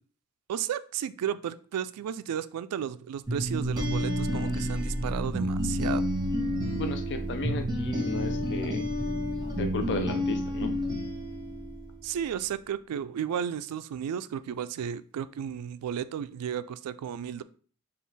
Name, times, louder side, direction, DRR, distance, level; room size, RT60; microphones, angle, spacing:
voice 1, 0.5-6.0 12.0-17.4, right 9 dB, 85° right, 16 dB, 0.3 m, -33 dB
sound 1, 3.3-12.0, equal, 20° right, 0.8 m, -30 dB
voice 2, 6.7-8.8 9.6-10.7, left 2 dB, 55° left, 7 dB, 0.5 m, -34 dB
5.2 x 2.4 x 3.2 m, 0.43 s
head